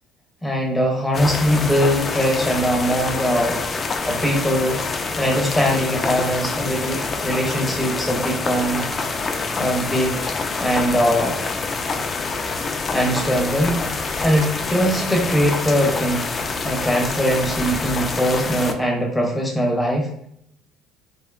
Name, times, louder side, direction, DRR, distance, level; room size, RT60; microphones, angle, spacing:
voice 1, 0.4-3.6 4.1-4.8 5.2-8.8 9.6-10.1 10.6-11.4 12.9-13.8 14.2-16.2 16.6-20.1, equal, 5° left, -2 dB, 0.7 m, -21 dB
sound 1, 1.1-18.7, left 4 dB, 35° left, 0.3 m, -26 dB
2.6 x 2.2 x 2.3 m, 0.70 s
supercardioid pair, 75°, 0 cm